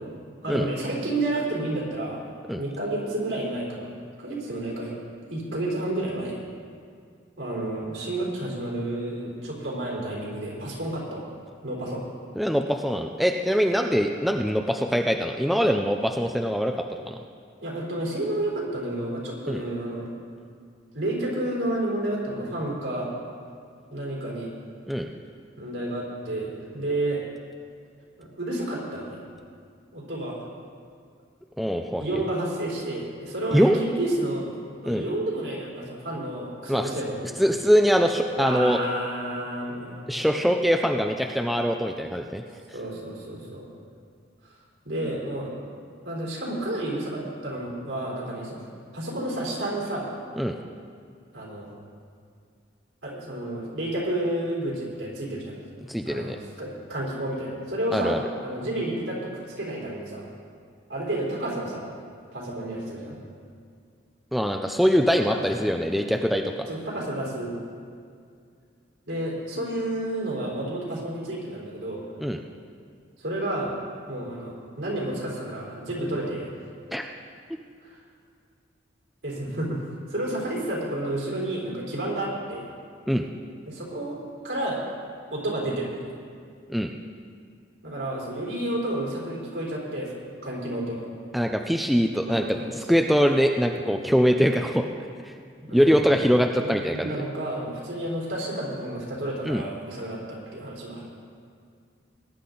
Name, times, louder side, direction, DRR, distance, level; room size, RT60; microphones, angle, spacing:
voice 1, 0.0-3.9 4.2-4.9 5.3-6.4 7.4-11.2 11.6-12.0 17.6-20.1 20.9-23.1 23.9-24.5 25.6-27.2 28.2-29.2 29.9-30.5 32.0-34.5 34.8-37.3 38.4-40.3 42.7-43.7 44.4-44.6 44.8-45.6 46.0-48.6 48.9-50.2 51.3-51.7 53.0-55.6 56.1-60.2 60.9-61.9 62.3-63.2 65.5-65.6 65.9-66.2 66.7-67.5 69.1-72.1 73.2-73.7 74.1-76.5 77.8-78.0 79.2-82.7 83.7-84.2 84.4-84.8 85.3-86.1 87.8-90.1 90.4-91.1 92.3-93.0 95.7-96.1 96.5-101.1, right 1 dB, 75° right, -4 dB, 3.9 m, -31 dB
voice 2, 12.4-16.7 17.1-17.2 19.5-19.6 24.9-25.1 31.6-32.0 33.5-33.8 34.9-35.0 36.7-36.9 37.4-38.8 40.1-42.4 50.4-50.6 55.9-56.4 57.9-58.2 64.3-66.7 72.2-72.4 76.9-77.0 83.1-83.3 86.7-86.9 91.3-94.8 95.7-97.1 99.4-99.6, equal, ahead, 3 dB, 0.4 m, -23 dB
20.0 x 10.5 x 3.9 m, 2.2 s
head